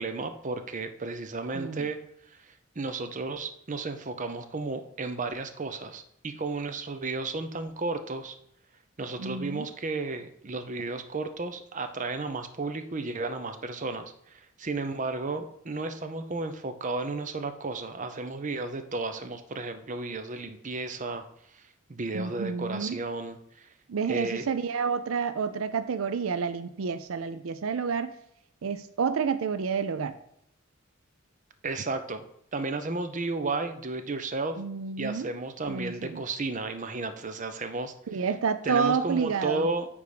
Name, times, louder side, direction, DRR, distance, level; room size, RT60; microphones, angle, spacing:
voice 1, 0.0-2.0 2.3-2.4 2.8-8.3 9.0-21.3 21.5-21.6 21.9-23.7 24.1-24.5 31.6-32.3 32.5-34.6 35.0-37.9 38.6-39.9, right 3 dB, 40° right, 8 dB, 0.7 m, -33 dB
voice 2, 1.5-1.9 9.2-9.7 22.1-23.0 23.9-28.1 28.6-30.2 34.6-35.3 35.7-36.2 38.1-39.7, right 6 dB, 80° right, 11 dB, 0.5 m, -29 dB
9.4 x 3.5 x 5.0 m, 0.76 s
head